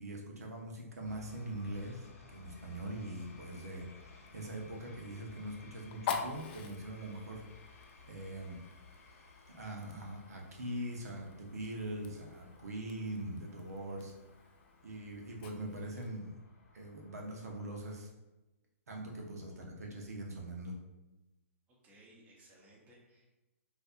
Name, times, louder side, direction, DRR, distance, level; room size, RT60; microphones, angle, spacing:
voice 1, 0.0-7.4 8.0-8.6 9.5-14.1 14.8-16.3 16.7-18.1 18.9-20.8, right 1 dB, 80° right, 0 dB, 0.8 m, -42 dB
sound 1, 1.0-18.0, left 4 dB, 70° left, 0.8 m, -58 dB
Fire, 2.9-16.2, left 6 dB, 40° left, 0.4 m, -47 dB
voice 2, 21.7-23.2, right 1 dB, 20° right, -3 dB, 0.8 m, -61 dB
4.1 x 2.6 x 2.4 m, 1.0 s
hypercardioid pair, 135°, 8 cm